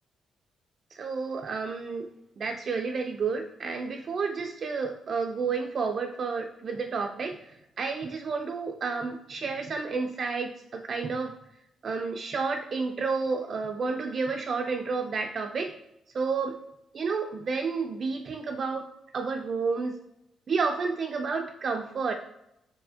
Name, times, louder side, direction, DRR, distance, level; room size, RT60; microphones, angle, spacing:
voice 1, 0.9-2.1 2.4-11.3 11.8-15.7 16.1-16.6 16.9-18.9 19.1-19.9 20.5-22.1, right 4 dB, 45° right, 4 dB, 0.3 m, -30 dB
4.8 x 4.0 x 2.5 m, 0.82 s
cardioid pair, 145°, 0 cm